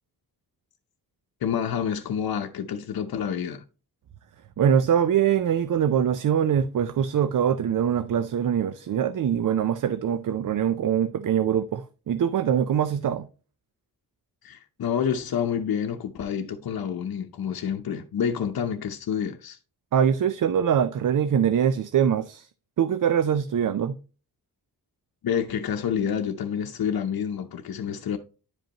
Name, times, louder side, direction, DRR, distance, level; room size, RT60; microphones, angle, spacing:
voice 1, 1.4-3.6 14.4-19.6 25.2-28.2, left 8 dB, 75° left, 0.8 m, -28 dB
voice 2, 4.6-13.3 19.9-22.5 22.8-24.0, right 8 dB, 60° right, 0.5 m, -23 dB
10.5 x 5.2 x 2.9 m
wide cardioid pair, 155°, 36 cm